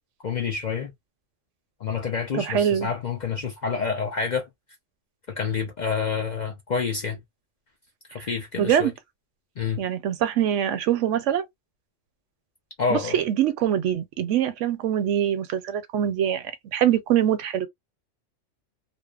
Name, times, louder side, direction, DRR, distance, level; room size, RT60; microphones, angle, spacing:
voice 1, 0.2-0.9 1.8-4.5 5.3-7.2 8.1-8.9 9.6-9.8 12.8-13.2, left 5 dB, 50° left, 0.5 m, -28 dB
voice 2, 2.3-2.9 8.2-8.3 8.6-8.9 9.8-11.4 12.9-17.7, right 10 dB, 75° right, 0.9 m, -24 dB
2.6 x 2.0 x 2.3 m
omnidirectional pair, 1.3 m